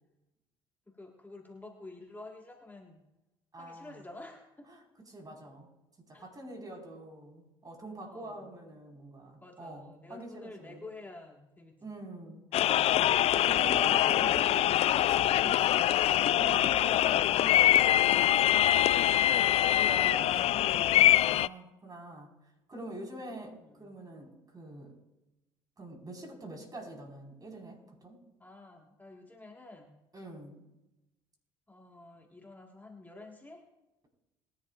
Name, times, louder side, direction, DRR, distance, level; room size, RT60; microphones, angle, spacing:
voice 1, 0.9-3.0 3.6-4.7 6.1-6.2 8.0-8.5 9.4-11.8 12.8-13.2 23.6-23.9 28.4-29.9 31.7-33.6, left 2 dB, 15° left, 0 dB, 1.8 m, -50 dB
voice 2, 3.5-4.1 4.7-5.7 6.1-10.8 11.8-17.8 18.1-22.3 22.7-25.0 25.8-28.2 30.1-30.6, right 1 dB, 30° right, 1 dB, 4.8 m, -45 dB
sound 1, 12.5-21.5, left 13 dB, 55° left, 0.3 m, -24 dB
21.0 x 11.0 x 2.5 m, 0.99 s
hypercardioid pair, 65°, 13 cm